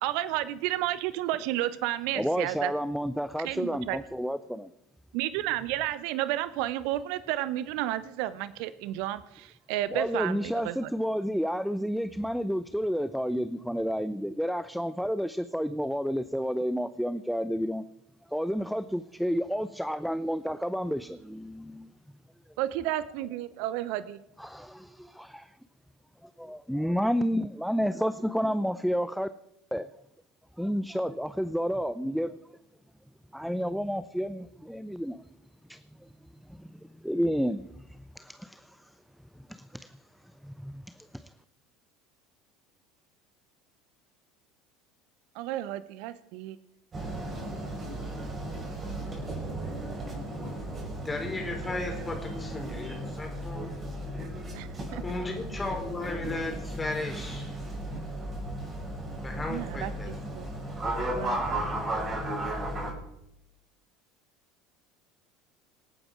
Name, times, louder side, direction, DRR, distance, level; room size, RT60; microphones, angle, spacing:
voice 1, 0.0-2.7 3.4-4.0 5.1-10.9 22.6-24.2 45.3-46.6 54.5-55.0 59.5-60.5 61.1-61.4, right 14 dB, 55° right, 15 dB, 0.6 m, -32 dB
voice 2, 2.2-4.7 9.9-17.8 18.3-21.9 24.4-25.5 26.4-29.3 29.7-29.9 30.6-32.3 33.3-35.2 35.7-35.8 36.5-36.7 37.0-37.6 38.2-38.7 39.5-39.9 40.4-40.8 41.1-41.3, equal, ahead, 13 dB, 0.6 m, -30 dB
sound 1, 46.9-62.9, right 1 dB, 25° right, 5.7 m, -35 dB
voice 3, 51.0-53.7 55.0-57.5 59.2-60.1, left 2 dB, 15° left, 3 dB, 4.5 m, -35 dB
26.5 x 8.8 x 4.9 m, 0.85 s
figure-of-eight pair, 70°, 0 cm